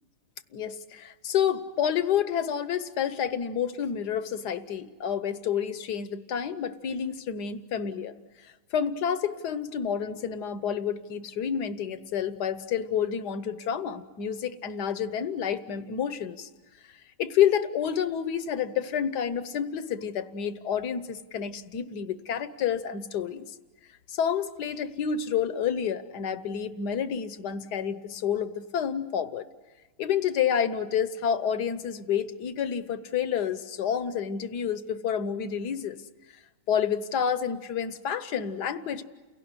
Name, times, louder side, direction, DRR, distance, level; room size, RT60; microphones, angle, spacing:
voice 1, 0.5-8.1 8.7-16.5 17.2-23.5 24.1-29.4 30.0-36.0 36.7-39.0, left 8 dB, 55° left, 12 dB, 1.3 m, -29 dB
29.5 x 17.0 x 9.7 m, 1.3 s
omnidirectional pair, 2.4 m